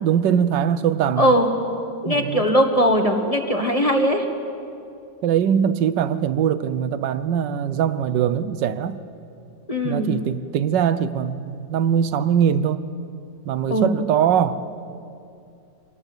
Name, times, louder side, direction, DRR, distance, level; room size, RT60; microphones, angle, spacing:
voice 1, 0.0-1.3 2.1-2.5 5.2-9.0 9.8-12.8 13.5-14.6, right 8 dB, 80° right, 14 dB, 1.5 m, -21 dB
voice 2, 1.2-1.5 2.0-4.3 9.7-10.1 13.7-13.9, equal, 20° left, 4 dB, 1.6 m, -19 dB
25.5 x 18.5 x 8.1 m, 2.5 s
omnidirectional pair, 1.9 m